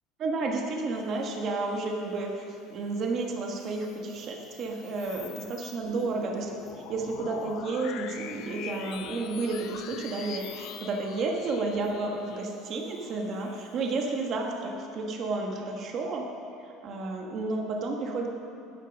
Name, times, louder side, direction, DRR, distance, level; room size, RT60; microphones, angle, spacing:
voice 1, 0.2-6.5 6.9-16.3 16.6-18.3, right 3 dB, 35° right, 1 dB, 1.2 m, -31 dB
sound 1, 3.4-14.3, left 8 dB, 55° left, 0.7 m, -44 dB
11.0 x 9.7 x 6.0 m, 2.6 s
cardioid pair, 160°, 0 cm